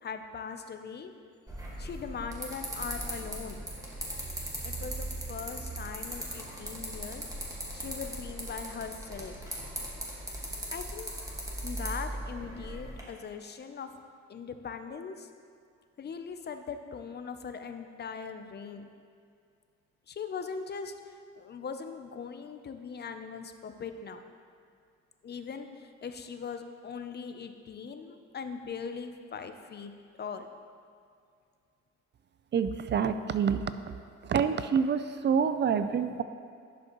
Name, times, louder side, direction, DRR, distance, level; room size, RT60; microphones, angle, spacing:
voice 1, 0.0-1.1 1.8-3.7 4.6-9.4 10.7-11.1 11.6-13.9 14.3-15.3 16.0-18.8 20.1-24.2 25.2-29.9 30.2-30.5, left 6 dB, 35° left, 8 dB, 0.5 m, -40 dB
sound 1, 1.5-13.0, right 1 dB, 10° right, 1.6 m, -38 dB
voice 2, 32.5-33.6 34.2-36.2, right 7 dB, 40° right, 11 dB, 0.4 m, -27 dB
11.0 x 5.1 x 3.0 m, 2.3 s
cardioid pair, 90°, 30 cm